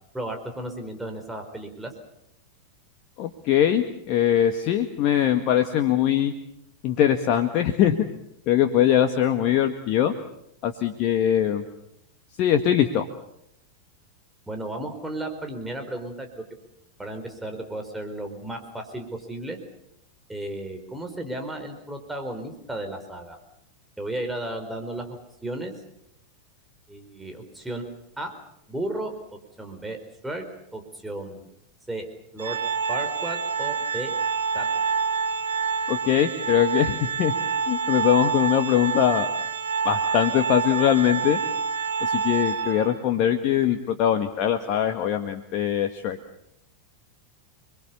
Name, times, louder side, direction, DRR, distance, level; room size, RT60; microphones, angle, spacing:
voice 1, 0.1-1.9 14.5-16.4 17.0-19.6 20.3-23.4 24.0-25.7 26.9-27.9 28.2-28.3 28.7-29.1 29.6-30.0 30.2-30.4 30.7-31.5 31.9-32.1 32.3-32.6 32.9-34.1 34.5-34.7, right 1 dB, 5° right, 4 dB, 4.7 m, -34 dB
voice 2, 3.2-6.3 6.8-8.0 8.5-10.1 10.6-11.6 12.4-13.0 35.9-37.3 37.7-39.3 39.8-41.4 42.0-46.2, left 10 dB, 40° left, 6 dB, 1.9 m, -22 dB
Organ, 32.4-43.1, right 5 dB, 65° right, 3.0 m, -27 dB
29.0 x 22.5 x 7.1 m, 0.78 s
figure-of-eight pair, 90°, 0 cm